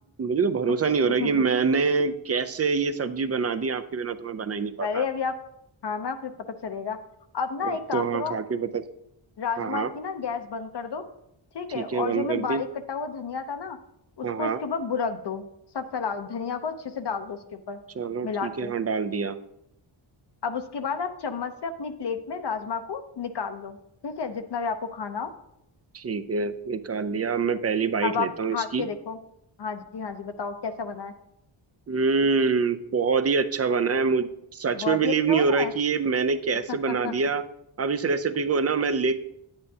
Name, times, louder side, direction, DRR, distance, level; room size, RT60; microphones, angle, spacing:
voice 1, 0.2-5.0 7.6-8.8 9.6-9.9 11.7-12.6 14.2-14.6 18.0-19.4 25.9-28.9 31.9-37.4 37.8-39.2, right 5 dB, 35° right, 12 dB, 0.4 m, -25 dB
voice 2, 4.8-5.4 5.8-6.3 6.6-7.0 7.3-8.4 9.4-11.1 11.5-13.8 14.2-15.5 15.7-17.8 18.2-18.7 20.4-23.8 24.0-25.3 28.0-29.2 29.6-31.1 34.8-35.7 36.7-37.1, left 5 dB, 55° left, 8 dB, 0.7 m, -31 dB
9.9 x 8.8 x 2.7 m, 0.79 s
wide cardioid pair, 120°, 49 cm